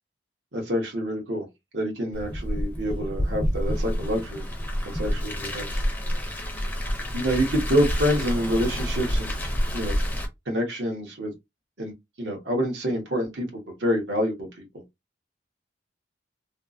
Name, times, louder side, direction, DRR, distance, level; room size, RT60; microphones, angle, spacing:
voice 1, 0.5-1.5 1.7-4.5 4.8-5.8 7.1-9.3 9.7-10.0 10.5-11.3 11.8-14.8, equal, 70° right, 1.3 m, -27 dB
Car, 2.1-10.3, equal, 10° left, 0.5 m, -28 dB
3.3 x 2.1 x 2.6 m
head